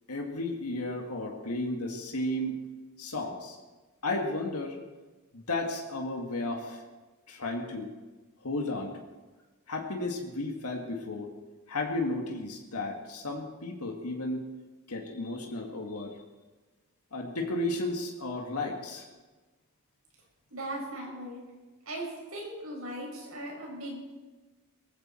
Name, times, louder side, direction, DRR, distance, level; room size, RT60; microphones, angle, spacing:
voice 1, 0.1-2.6 3.0-3.6 4.0-4.8 5.3-6.8 7.3-7.9 8.4-9.0 9.7-11.3 11.7-14.5 14.9-16.2 17.1-19.1, left 2 dB, 85° left, 1 dB, 2.0 m, -33 dB
voice 2, 20.5-21.4 21.8-22.0 22.3-24.1, right 1 dB, 70° right, -2 dB, 6.8 m, -38 dB
20.0 x 15.5 x 4.5 m, 1.2 s
head